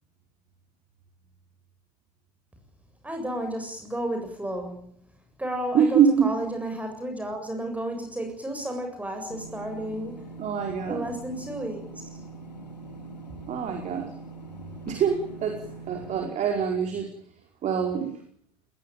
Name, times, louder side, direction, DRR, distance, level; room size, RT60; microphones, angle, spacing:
voice 1, 3.0-4.9 5.4-10.4 10.9-11.9, right 1 dB, 5° right, 4 dB, 7.6 m, -32 dB
voice 2, 5.7-6.3 10.4-11.0 13.5-14.1 14.9-15.6 15.9-17.1 17.6-18.2, right 7 dB, 35° right, 4 dB, 4.8 m, -24 dB
sound 1, 9.3-16.3, right 2 dB, 85° left, 2.5 m, -42 dB
21.5 x 21.5 x 9.2 m, 0.62 s
figure-of-eight pair, 80°, 21 cm